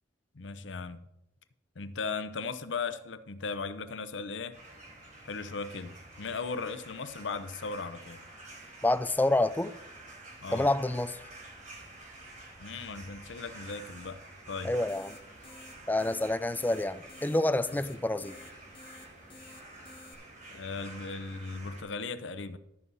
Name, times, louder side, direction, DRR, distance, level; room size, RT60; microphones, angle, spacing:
voice 1, 0.3-1.0 1.8-4.6 5.2-8.2 10.4-10.7 12.6-14.2 14.5-14.7 20.5-22.6, left 4 dB, 85° left, 0.7 m, -37 dB
sound 1, 4.5-21.8, right 2 dB, 45° right, 4.1 m, -49 dB
voice 2, 8.8-9.7 10.5-11.2 14.6-15.2 15.9-18.4, left 2 dB, 10° left, 0.4 m, -28 dB
sound 2, 14.6-20.1, left 3 dB, 30° left, 1.4 m, -54 dB
13.0 x 5.5 x 5.5 m
head